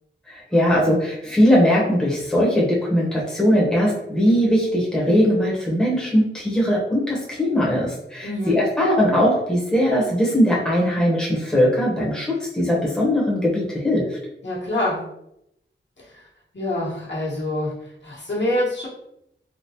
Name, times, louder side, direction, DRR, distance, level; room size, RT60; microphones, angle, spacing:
voice 1, 0.3-14.2, equal, 5° left, -5 dB, 0.9 m, -20 dB
voice 2, 8.2-8.6 14.4-15.0 16.0-16.2 16.5-18.9, left 1 dB, 60° left, -6 dB, 1.2 m, -26 dB
3.5 x 2.3 x 2.8 m, 0.80 s
wide cardioid pair, 75°, 21 cm